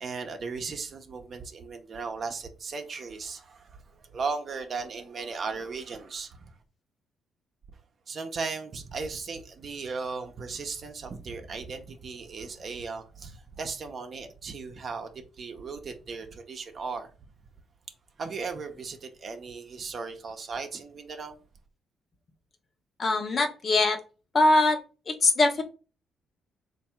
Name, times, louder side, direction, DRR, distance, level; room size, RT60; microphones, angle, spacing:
voice 1, 0.0-6.5 8.1-17.1 18.2-21.4, right 4 dB, 50° right, 0.7 m, -37 dB
voice 2, 23.0-24.0 24.3-24.8 25.1-25.6, left 2 dB, 40° left, 1.0 m, -22 dB
3.4 x 2.6 x 4.3 m
cardioid pair, 90°, 0 cm